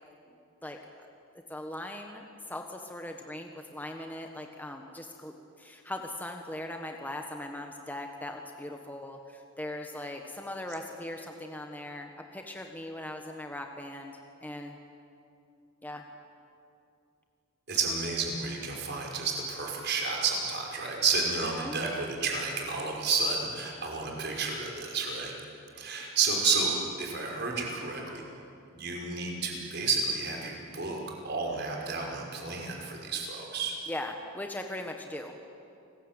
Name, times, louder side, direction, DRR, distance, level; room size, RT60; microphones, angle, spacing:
voice 1, 0.6-1.1 1.5-14.8 15.8-16.0 21.4-21.8 33.9-35.3, left 1 dB, 10° left, 3 dB, 1.4 m, -40 dB
voice 2, 17.7-25.3 25.8-26.7 27.0-28.2 28.7-31.0 31.2-33.8, right 4 dB, 50° right, 0 dB, 5.5 m, -31 dB
29.0 x 20.5 x 9.1 m, 2.6 s
head